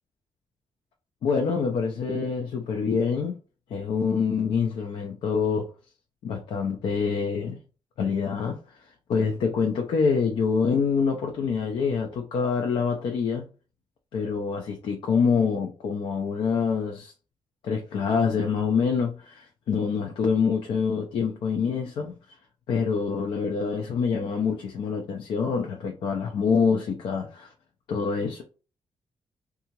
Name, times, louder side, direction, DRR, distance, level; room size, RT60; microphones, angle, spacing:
voice 1, 1.2-3.3 3.7-5.7 6.2-7.6 8.0-8.6 9.1-13.4 14.1-17.1 17.6-22.1 22.7-27.5 27.9-28.4, left 5 dB, 65° left, 0.5 m, -26 dB
2.8 x 2.3 x 2.9 m
wide cardioid pair, 165°, 9 cm